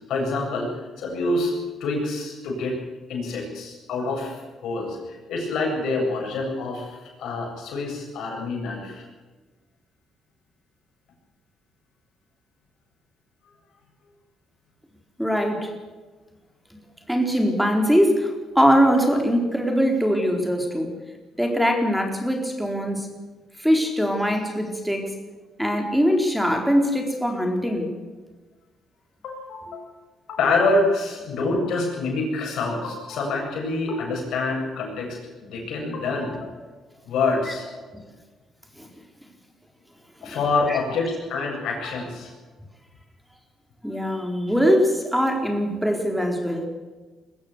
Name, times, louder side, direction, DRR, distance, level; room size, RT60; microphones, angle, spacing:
voice 1, 0.1-1.5 1.8-2.8 3.1-9.0 29.2-29.9 30.3-36.6 37.0-37.7 40.2-42.3, left 3 dB, 80° left, 1 dB, 7.7 m, -26 dB
voice 2, 15.2-15.7 17.1-20.9 21.4-23.1 23.6-25.1 25.6-28.0 38.8-38.9 40.2-40.4 40.7-40.8 43.8-46.7, equal, ahead, 4 dB, 4.2 m, -22 dB
22.5 x 15.0 x 8.3 m, 1.3 s
cardioid pair, 90°, 0 cm